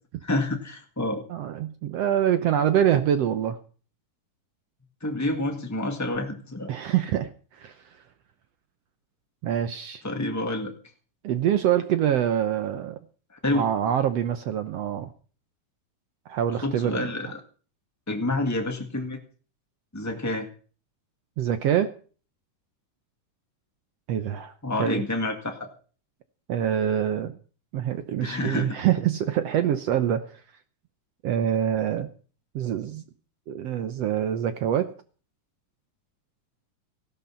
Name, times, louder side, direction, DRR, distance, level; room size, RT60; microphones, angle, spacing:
voice 1, 0.2-1.2 5.0-6.7 10.0-10.7 13.4-13.6 16.6-17.4 18.1-19.2 19.9-20.5 24.6-25.7 28.2-28.7, left 2 dB, 15° left, 3 dB, 0.6 m, -28 dB
voice 2, 1.3-3.6 6.7-7.9 9.4-10.0 11.2-13.0 13.5-15.1 16.3-17.0 21.4-21.9 24.1-24.5 24.8-25.0 26.5-27.4 27.7-30.4 31.2-32.1 32.5-33.0 33.5-34.9, right 10 dB, 70° right, 10 dB, 1.6 m, -25 dB
16.5 x 12.0 x 5.7 m, 0.41 s
omnidirectional pair, 3.8 m